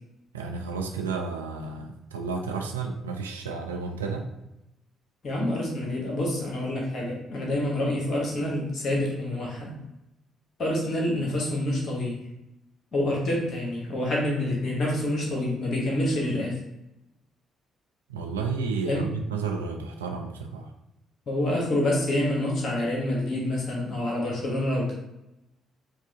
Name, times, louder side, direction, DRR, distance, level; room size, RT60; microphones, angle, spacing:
voice 1, 0.3-4.3 18.1-20.7, right 4 dB, 80° right, 3 dB, 0.3 m, -32 dB
voice 2, 5.2-9.8 10.6-12.2 12.9-16.6 18.8-19.1 21.3-24.9, left 1 dB, 45° left, -2 dB, 1.1 m, -27 dB
4.6 x 2.4 x 2.4 m, 0.91 s
figure-of-eight pair, 45°, 0 cm